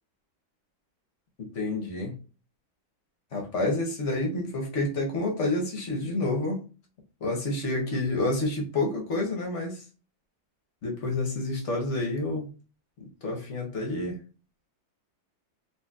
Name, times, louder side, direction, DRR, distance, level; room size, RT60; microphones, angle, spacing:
voice 1, 1.4-2.2 3.3-6.6 7.2-9.8 10.8-12.5 13.2-14.2, left 2 dB, 55° left, 0.8 m, -29 dB
4.1 x 2.8 x 2.3 m
omnidirectional pair, 2.1 m